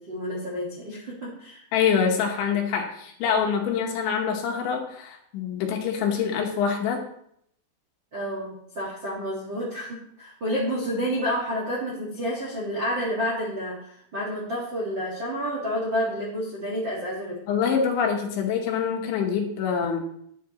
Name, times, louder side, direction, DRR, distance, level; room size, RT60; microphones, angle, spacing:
voice 1, 0.0-1.6 8.1-17.4, equal, 55° right, -5 dB, 1.3 m, -29 dB
voice 2, 1.7-7.0 17.5-20.0, left 7 dB, 75° left, 2 dB, 3.4 m, -25 dB
10.5 x 10.0 x 3.1 m, 0.70 s
omnidirectional pair, 5.7 m